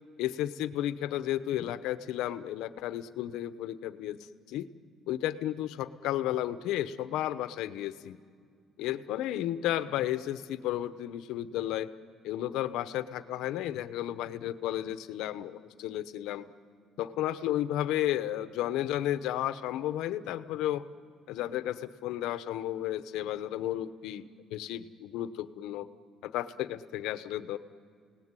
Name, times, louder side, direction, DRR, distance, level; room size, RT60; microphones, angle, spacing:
voice 1, 0.2-4.2 4.5-4.7 5.1-8.2 8.8-11.9 12.2-16.5 17.0-20.8 21.3-25.9 26.2-27.6, left 13 dB, 90° left, 12 dB, 0.9 m, -33 dB
29.5 x 18.0 x 9.8 m, 2.2 s
cardioid pair, 140°, 0 cm